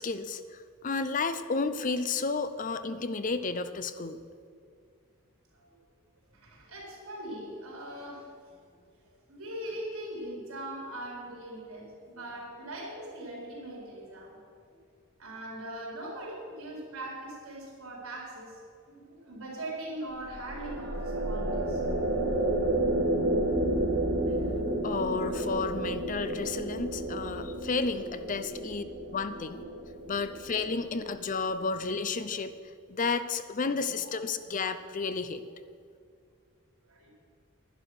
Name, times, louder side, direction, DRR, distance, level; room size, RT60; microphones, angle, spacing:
voice 1, 0.0-4.2 24.8-28.8 29.1-29.6 30.1-32.5 32.9-35.4, left 4 dB, 35° left, 11 dB, 0.5 m, -32 dB
voice 2, 6.3-14.4 15.2-18.6 18.9-22.2 22.5-22.6 25.2-25.4 27.3-27.5 28.4-28.7 29.3-29.6 30.0-30.5 33.6-34.1 36.9-37.1, right 1 dB, 80° right, -2 dB, 4.2 m, -41 dB
sound 1, 20.1-31.6, right 1 dB, 65° right, 1.6 m, -31 dB
11.5 x 10.5 x 6.3 m, 2.2 s
head